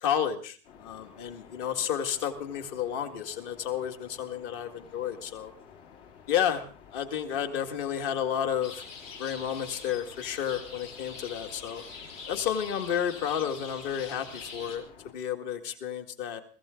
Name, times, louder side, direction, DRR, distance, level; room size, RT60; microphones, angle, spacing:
voice 1, 0.0-5.5 6.3-6.6 6.9-8.9 9.2-11.8 12.3-16.4, left 9 dB, 45° left, 7 dB, 2.1 m, -31 dB
sound 1, 0.6-15.1, left 7 dB, 65° left, 4.5 m, -53 dB
sound 2, 8.6-14.8, left 4 dB, 85° left, 6.1 m, -44 dB
23.0 x 15.5 x 3.8 m, 0.38 s
supercardioid pair, 175°, 37 cm